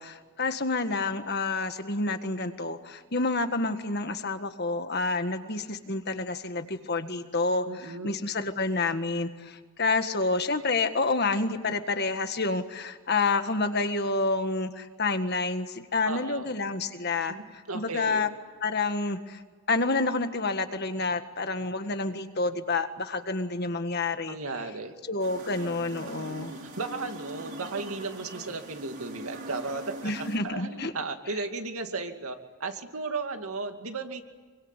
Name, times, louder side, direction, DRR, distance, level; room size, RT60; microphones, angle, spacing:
voice 1, 0.0-17.4 17.7-18.3 18.6-19.4 19.7-24.4 25.1-26.5 30.0-30.9, left 3 dB, 45° left, 8 dB, 1.7 m, -29 dB
voice 2, 7.7-8.2 16.0-16.5 17.3-18.2 24.3-24.9 26.3-34.2, right 3 dB, 80° right, 5 dB, 2.5 m, -35 dB
sound 1, 25.2-30.4, right 1 dB, 50° right, 6.5 m, -42 dB
25.5 x 24.0 x 9.2 m, 1.5 s
head